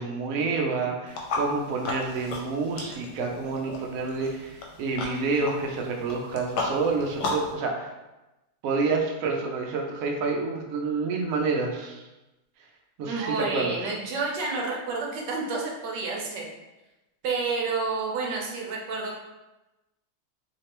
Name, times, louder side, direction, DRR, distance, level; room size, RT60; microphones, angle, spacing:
voice 1, 0.0-7.9 8.6-12.0 13.0-13.7, right 4 dB, 90° right, 1 dB, 0.7 m, -28 dB
sound 1, 1.1-7.5, left 2 dB, 75° left, 1.4 m, -35 dB
voice 2, 13.1-16.5 17.2-19.2, right 4 dB, 70° right, -1 dB, 1.2 m, -30 dB
3.3 x 3.1 x 2.9 m, 1.0 s
omnidirectional pair, 2.2 m